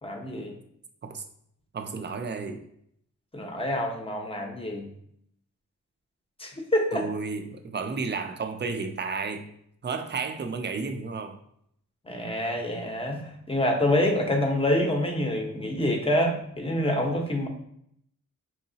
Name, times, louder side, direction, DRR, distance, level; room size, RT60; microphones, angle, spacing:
voice 1, 0.0-0.5 3.3-4.9 6.4-7.0 12.0-17.5, left 1 dB, 15° left, 2 dB, 0.7 m, -26 dB
voice 2, 1.7-2.7 6.9-9.5 9.8-11.4, right 4 dB, 35° right, 7 dB, 0.5 m, -32 dB
4.6 x 2.9 x 2.7 m, 0.71 s
wide cardioid pair, 85°, 33 cm